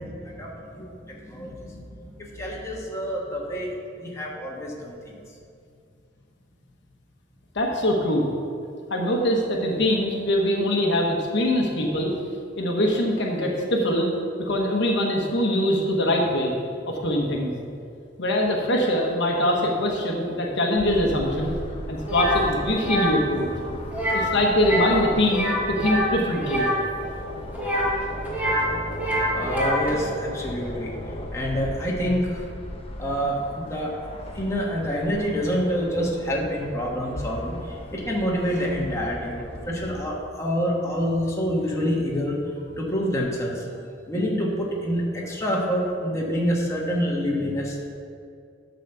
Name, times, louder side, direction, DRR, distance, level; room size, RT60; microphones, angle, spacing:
voice 1, 0.0-3.7 4.0-5.0 29.3-31.0 31.3-32.4 33.0-34.0 34.3-37.6 37.9-42.4 42.6-43.6 44.1-47.9, equal, 15° left, -3 dB, 1.5 m, -27 dB
voice 2, 7.5-8.3 8.9-12.2 12.6-14.1 14.4-16.5 16.9-17.5 18.2-21.6 21.9-23.5 24.1-26.7, left 1 dB, 65° left, 0 dB, 1.2 m, -23 dB
sound 1, 20.8-40.1, left 1 dB, 30° left, 0.8 m, -37 dB
sound 2, 22.1-22.4 22.8-23.1 23.9-24.3 24.6-25.0 25.3-26.8 27.5-28.7 28.9-29.9, equal, 10° right, 1.8 m, -25 dB
11.5 x 4.2 x 6.9 m, 2.4 s
head